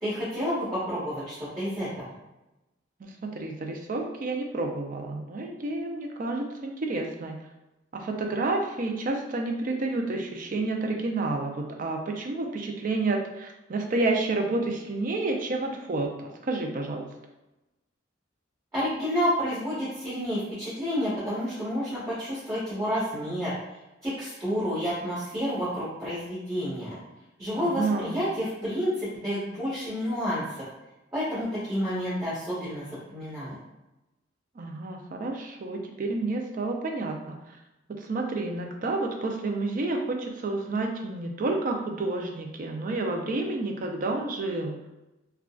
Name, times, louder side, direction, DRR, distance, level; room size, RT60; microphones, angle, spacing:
voice 1, 0.0-2.2 18.7-23.5 24.0-27.0 27.4-30.4 31.1-33.6, equal, 20° right, -14 dB, 1.4 m, -30 dB
voice 2, 3.0-7.4 7.9-17.1 27.6-28.2 34.6-37.6 38.0-44.8, right 2 dB, 45° right, 3 dB, 0.4 m, -30 dB
3.7 x 2.3 x 2.3 m, 0.99 s
head